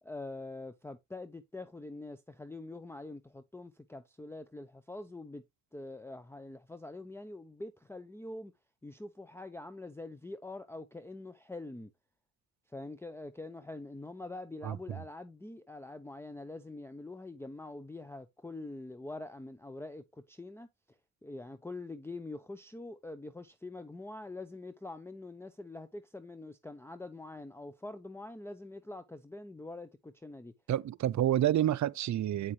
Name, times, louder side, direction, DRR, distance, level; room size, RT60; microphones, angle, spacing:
voice 1, 0.0-5.4 5.7-8.5 8.8-11.9 12.7-20.7 21.2-30.5, left 2 dB, 5° left, 0.6 m, -44 dB
voice 2, 30.7-32.5, right 12 dB, 55° right, 0.5 m, -28 dB
8.8 x 5.5 x 3.2 m
cardioid pair, 100°, 36 cm